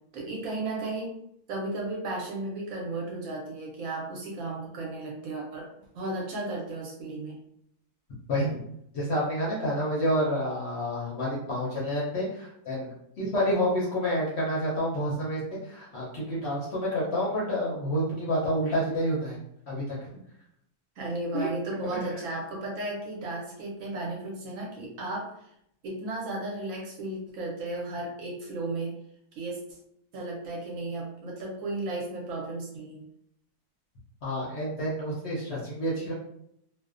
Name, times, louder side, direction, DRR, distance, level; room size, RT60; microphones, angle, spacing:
voice 1, 0.1-1.2 1.5-7.4 21.0-25.5 25.8-28.9 29.3-29.8 30.1-33.1, right 2 dB, 70° right, -2 dB, 0.9 m, -34 dB
voice 2, 8.3-8.6 8.9-19.4 19.7-20.2 21.3-21.5 21.9-22.0 34.2-36.1, equal, 60° left, -6 dB, 0.7 m, -29 dB
2.5 x 2.1 x 2.4 m, 0.74 s
omnidirectional pair, 1.7 m